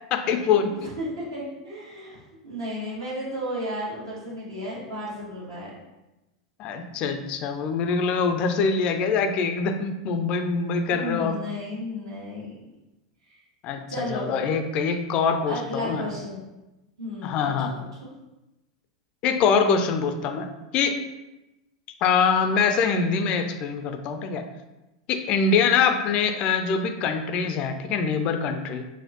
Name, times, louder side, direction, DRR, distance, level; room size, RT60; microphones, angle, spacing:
voice 1, 0.1-0.9 6.6-11.4 13.6-16.1 17.2-17.7 19.2-20.5 20.7-21.0 22.0-24.5 25.1-28.8, left 5 dB, 40° left, 7 dB, 0.4 m, -24 dB
voice 2, 0.7-5.7 10.8-12.5 13.3-13.4 13.9-14.3 15.5-16.4 17.0-17.5 18.0-18.1, equal, 70° right, -6 dB, 1.3 m, -33 dB
4.2 x 2.1 x 2.9 m, 1.0 s
figure-of-eight pair, 85°, 3 cm